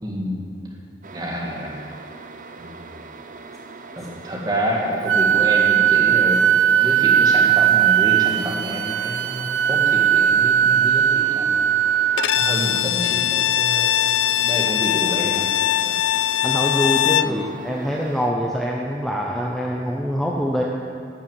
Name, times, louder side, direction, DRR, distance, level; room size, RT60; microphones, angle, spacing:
voice 1, 0.0-0.4 1.1-1.8 2.6-2.9 4.0-11.8 12.3-13.9 14.3-15.5 15.9-16.0 17.2-17.5, equal, 20° right, -2 dB, 1.9 m, -28 dB
sound 1, 1.0-18.3, right 3 dB, 45° right, 0.7 m, -41 dB
Wind instrument woodwind instrument, 5.1-12.8, right 9 dB, 85° right, 0.4 m, -18 dB
Bowed string instrument, 12.2-17.4, left 12 dB, 75° left, 0.3 m, -21 dB
voice 2, 16.4-20.6, equal, ahead, -2 dB, 0.8 m, -24 dB
11.0 x 6.9 x 9.2 m, 2.5 s
head